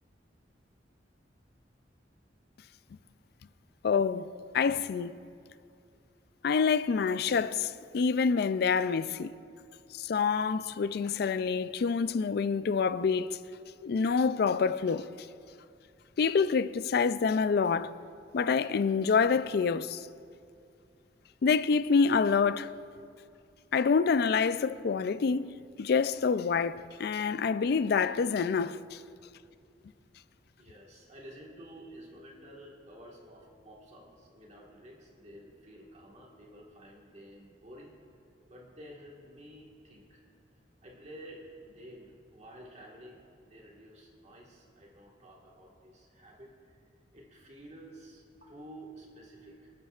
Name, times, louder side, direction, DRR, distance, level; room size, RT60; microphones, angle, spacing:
voice 1, 3.8-5.1 6.4-9.3 9.9-13.4 13.8-15.1 16.2-17.9 18.3-20.1 21.4-22.7 23.7-25.5 25.8-29.0, left 5 dB, 60° left, 0.4 m, -27 dB
voice 2, 30.6-37.9 38.5-40.2 40.8-46.5 47.1-49.7, right 1 dB, 40° right, 1.6 m, -51 dB
25.5 x 9.5 x 2.4 m
head